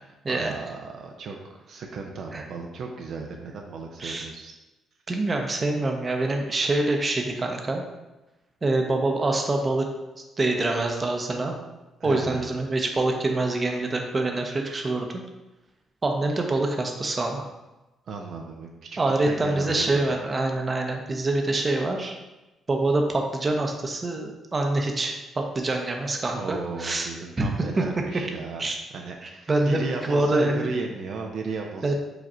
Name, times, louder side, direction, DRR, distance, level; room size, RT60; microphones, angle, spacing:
voice 1, 0.3-4.5 12.0-12.5 18.1-20.1 26.3-28.6 28.9-31.9, right 4 dB, 65° right, 1 dB, 0.5 m, -35 dB
voice 2, 5.1-7.8 8.6-9.9 10.4-11.6 12.0-15.1 16.0-17.5 19.0-22.2 22.7-27.1 27.4-27.5 27.8-27.9 28.6-28.8 29.2-30.7 31.8-31.9, right 2 dB, 30° right, 3 dB, 0.7 m, -25 dB
5.0 x 2.5 x 4.3 m, 1.0 s
cardioid pair, 90°, 0 cm